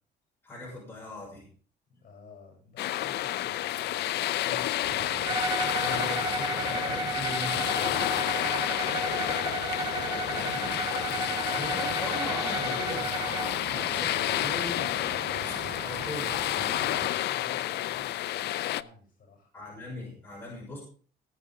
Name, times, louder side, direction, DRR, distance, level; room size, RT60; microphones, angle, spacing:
voice 1, 0.4-1.5 4.4-4.7 5.7-8.4 10.3-10.7 11.5-15.0 15.4-16.3 19.5-20.8, left 2 dB, 10° left, -4 dB, 5.9 m, -40 dB
voice 2, 1.9-5.3 8.6-9.5 10.0-10.6 11.1-11.4 15.5-15.8 16.6-19.5, left 4 dB, 50° left, 1 dB, 7.2 m, -52 dB
sound 1, 2.8-18.8, left 14 dB, 70° left, 0.5 m, -30 dB
sound 2, 4.8-17.1, right 9 dB, 60° right, 0.9 m, -42 dB
Bowed string instrument, 5.2-13.6, right 5 dB, 25° right, 0.6 m, -34 dB
19.5 x 8.1 x 3.6 m, 0.41 s
cardioid pair, 140°, 18 cm